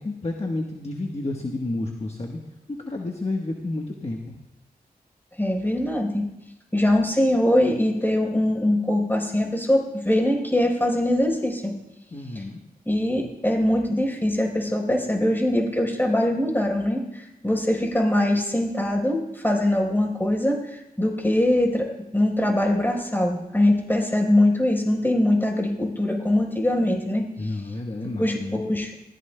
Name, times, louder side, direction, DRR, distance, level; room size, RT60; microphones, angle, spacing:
voice 1, 0.0-2.4 2.7-4.4 12.1-12.6 27.4-28.6, left 2 dB, 45° left, 0 dB, 1.2 m, -30 dB
voice 2, 5.4-6.2 6.7-11.7 12.9-21.9 22.1-27.2 28.2-28.9, left 1 dB, 15° left, -1 dB, 4.2 m, -22 dB
19.5 x 15.5 x 2.3 m, 0.91 s
cardioid pair, 55°, 16 cm